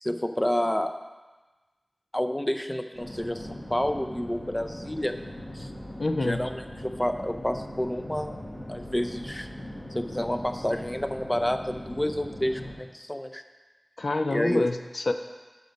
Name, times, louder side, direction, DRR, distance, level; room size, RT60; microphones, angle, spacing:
voice 1, 0.0-0.9 2.1-5.2 5.5-5.7 6.2-8.4 8.7-9.5 9.9-13.4 14.3-14.7, left 1 dB, 20° left, 7 dB, 0.5 m, -29 dB
sound 1, 2.9-12.7, left 1 dB, 55° left, 1.7 m, -40 dB
voice 2, 6.0-6.4 14.0-15.1, left 2 dB, 80° left, 8 dB, 0.3 m, -27 dB
6.7 x 5.2 x 5.2 m, 1.2 s
wide cardioid pair, 50°, 0 cm